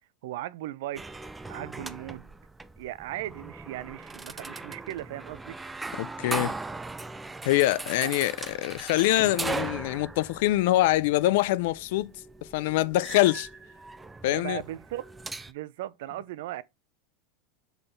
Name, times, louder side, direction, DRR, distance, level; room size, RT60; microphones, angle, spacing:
voice 1, 0.2-1.2 1.5-2.3 2.8-5.7 8.0-8.1 14.2-15.0 15.5-16.6, right 14 dB, 70° right, 0.5 m, -37 dB
sound 1, 1.0-15.5, right 3 dB, 10° right, 0.3 m, -39 dB
voice 2, 6.0-6.5 7.4-12.1 12.5-13.5 14.2-14.6, left 16 dB, 65° left, 0.4 m, -24 dB
5.9 x 4.0 x 5.1 m
supercardioid pair, 160°, 0 cm